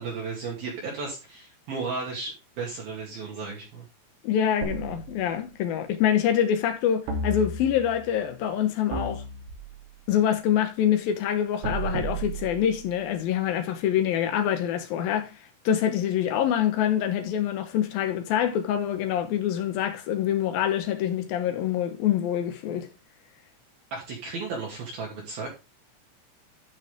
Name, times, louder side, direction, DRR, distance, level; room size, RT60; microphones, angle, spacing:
voice 1, 0.0-3.9 23.9-25.5, right 4 dB, 50° right, 3.9 m, -34 dB
voice 2, 4.2-9.2 10.1-15.3 15.6-22.9, left 10 dB, 85° left, 2.0 m, -25 dB
sound 1, 4.6-5.7 7.1-8.0 8.9-10.0 11.6-13.1, right 3 dB, 70° right, 5.5 m, -34 dB
12.0 x 6.1 x 3.6 m
omnidirectional pair, 6.0 m